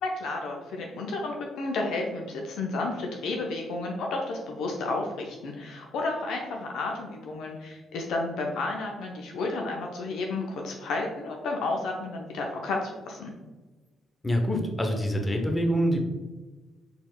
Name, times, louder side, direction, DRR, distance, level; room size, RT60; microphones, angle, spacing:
voice 1, 0.0-13.3, left 3 dB, 65° left, 1 dB, 0.5 m, -32 dB
voice 2, 14.2-16.0, equal, 20° left, 3 dB, 0.8 m, -25 dB
4.3 x 3.4 x 2.3 m, 1.2 s
hypercardioid pair, 45°, 0 cm